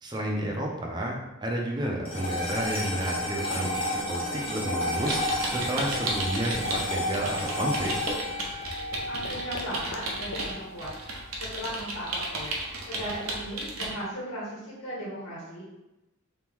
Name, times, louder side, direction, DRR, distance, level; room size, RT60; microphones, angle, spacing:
voice 1, 0.0-5.2 5.5-7.9, right 1 dB, 20° right, -1 dB, 0.6 m, -31 dB
sound 1, 2.1-10.6, left 1 dB, 25° left, 0.9 m, -32 dB
sound 2, 5.0-6.9 7.1-13.9, right 2 dB, 85° right, 0.8 m, -34 dB
sound 3, 8.0-12.8, left 2 dB, 45° left, 0.5 m, -47 dB
voice 2, 9.1-15.6, equal, 80° left, -7 dB, 1.3 m, -37 dB
3.3 x 3.0 x 3.6 m, 0.96 s
head